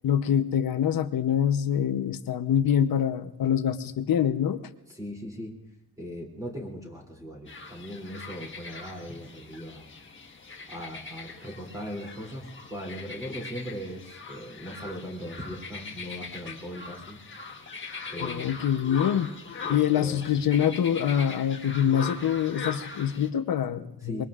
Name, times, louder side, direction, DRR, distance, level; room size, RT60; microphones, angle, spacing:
voice 1, 0.0-4.6 18.2-19.3 19.7-24.2, left 9 dB, 65° left, 10 dB, 0.9 m, -25 dB
voice 2, 4.9-5.5 6.0-9.9 10.7-17.2 18.1-18.7 19.6-20.2 24.0-24.3, equal, 10° right, -2 dB, 3.0 m, -39 dB
sound 1, 7.5-23.3, left 4 dB, 30° left, 1.4 m, -41 dB
24.5 x 22.5 x 2.5 m, 0.88 s
wide cardioid pair, 170°, 37 cm